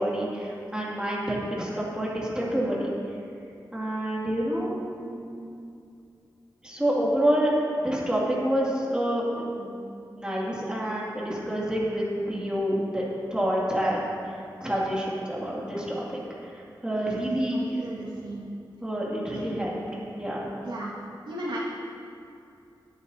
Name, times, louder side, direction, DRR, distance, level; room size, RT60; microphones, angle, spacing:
voice 1, 0.0-2.9 3.7-5.5 6.6-7.5 7.8-9.7 10.1-13.0 13.3-14.0 14.6-16.2 16.8-17.8 18.8-19.7 20.1-20.4, equal, 10° right, -6 dB, 2.6 m, -28 dB
voice 2, 17.5-18.5 19.3-19.5 20.6-20.9 21.3-21.6, right 1 dB, 75° right, -6 dB, 2.1 m, -36 dB
18.5 x 8.8 x 2.9 m, 2.5 s
wide cardioid pair, 105°, 8 cm